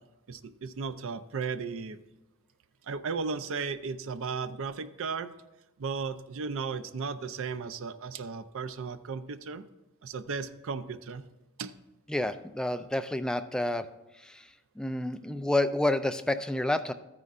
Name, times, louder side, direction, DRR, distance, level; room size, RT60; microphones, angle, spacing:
voice 1, 0.3-2.0 2.8-5.3 5.8-9.6 10.0-11.3 11.6-11.7, right 5 dB, 65° right, 12 dB, 0.5 m, -35 dB
voice 2, 12.1-13.9 14.3-14.4 14.8-16.9, left 1 dB, 5° left, 9 dB, 0.4 m, -29 dB
13.5 x 9.4 x 2.5 m, 1.0 s
head